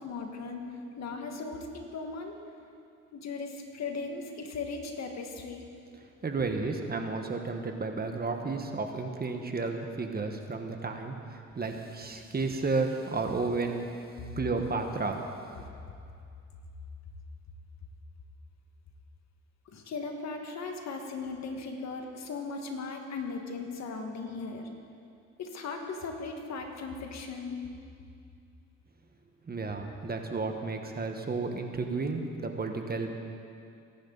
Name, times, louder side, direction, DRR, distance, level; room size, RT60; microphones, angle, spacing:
voice 1, 0.0-2.4 3.1-5.7 19.7-24.7 25.4-27.6 29.9-30.0, left 4 dB, 60° left, 3 dB, 1.9 m, -38 dB
voice 2, 6.2-13.9 14.4-15.2 29.5-33.1, right 3 dB, 30° right, 4 dB, 1.4 m, -32 dB
22.5 x 11.0 x 4.1 m, 2.5 s
cardioid pair, 90°, 30 cm